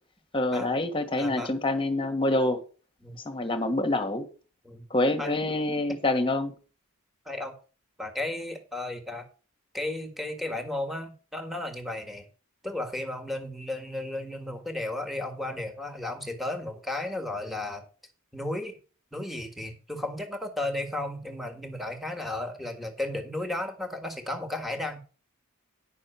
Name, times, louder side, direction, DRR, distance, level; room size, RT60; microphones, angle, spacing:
voice 1, 0.3-2.6 3.2-4.3 4.9-6.5, left 2 dB, 25° left, 1.4 m, -26 dB
voice 2, 1.2-1.5 3.0-3.2 4.6-4.9 5.2-5.6 7.2-7.5 8.0-9.3 9.7-12.2 12.6-17.9 18.3-18.8 19.1-25.0, left 1 dB, ahead, 1.7 m, -34 dB
10.0 x 6.2 x 5.7 m
head